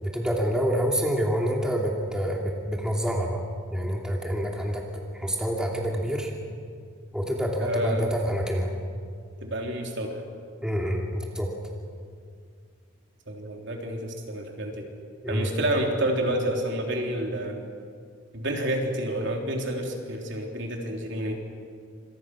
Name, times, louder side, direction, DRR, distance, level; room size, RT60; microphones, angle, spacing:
voice 1, 0.0-3.4 3.7-4.8 5.1-6.3 7.1-8.7 10.6-11.5 15.2-15.5, equal, 5° right, -1 dB, 2.6 m, -27 dB
voice 2, 7.6-8.0 9.4-10.2 13.3-14.8 15.3-17.6 18.3-21.3, right 1 dB, 55° right, 1 dB, 3.7 m, -29 dB
28.0 x 26.5 x 6.3 m, 2.2 s
head